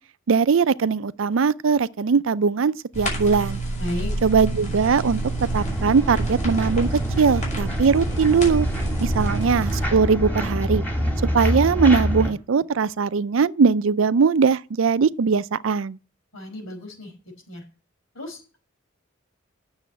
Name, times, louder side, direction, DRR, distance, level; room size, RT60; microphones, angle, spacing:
voice 1, 0.3-3.6 4.2-5.2 5.5-6.9 7.2-8.7 9.0-10.8 11.3-16.0, right 5 dB, 70° right, 0.4 m, -20 dB
sound 1, 2.9-9.9, right 2 dB, 35° left, 6.1 m, -29 dB
voice 2, 3.8-4.1 16.3-17.1 17.5-17.6 18.1-18.6, left 1 dB, 85° left, 5.0 m, -33 dB
sound 2, 4.3-12.3, equal, 10° left, 2.5 m, -27 dB
9.1 x 7.1 x 8.5 m
head